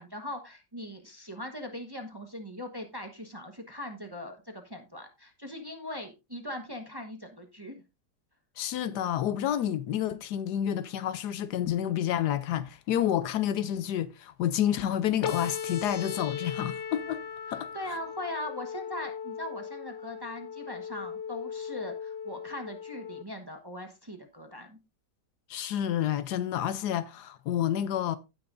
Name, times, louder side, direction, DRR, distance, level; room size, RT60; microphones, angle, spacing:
voice 1, 0.0-7.8 17.5-24.8, left 1 dB, 15° right, 1.0 m, -40 dB
voice 2, 8.6-17.2 17.5-17.7 25.5-28.2, left 10 dB, 75° left, 1.2 m, -29 dB
sound 1, 15.2-23.2, left 7 dB, 60° left, 0.8 m, -38 dB
16.0 x 6.1 x 2.6 m
omnidirectional pair, 1.8 m